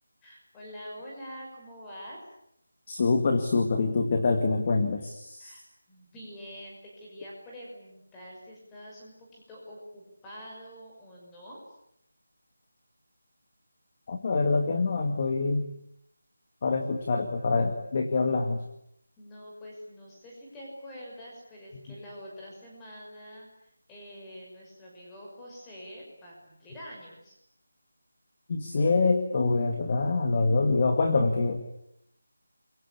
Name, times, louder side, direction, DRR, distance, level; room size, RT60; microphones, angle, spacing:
voice 1, 0.2-2.2 5.4-11.6 19.2-27.4, equal, 5° left, -3 dB, 5.9 m, -46 dB
voice 2, 2.9-5.5 14.1-15.7 16.6-18.6 28.5-31.6, left 3 dB, 20° left, 5 dB, 2.0 m, -25 dB
29.0 x 23.5 x 8.6 m, 0.75 s
figure-of-eight pair, 180°, 0 cm